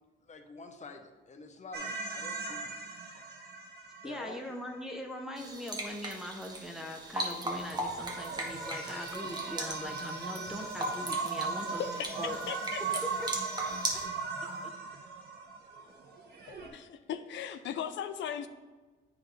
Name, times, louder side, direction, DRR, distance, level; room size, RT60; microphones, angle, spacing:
voice 1, 0.3-2.7 4.0-4.4 12.9-13.0, left 3 dB, 35° left, 6 dB, 0.8 m, -47 dB
sound 1, 1.7-5.0 7.2-16.7, right 4 dB, 55° right, 1.2 m, -38 dB
voice 2, 4.0-11.8 12.2-12.4 12.9-13.3 14.6-14.7, left 1 dB, 5° right, 2 dB, 0.7 m, -41 dB
sound 2, 5.4-14.1, right 1 dB, 20° right, 1.2 m, -39 dB
voice 3, 11.8-12.8 16.5-18.5, left 8 dB, 70° left, 10 dB, 0.5 m, -38 dB
8.6 x 4.8 x 3.2 m, 1.3 s
cardioid pair, 90°, 20 cm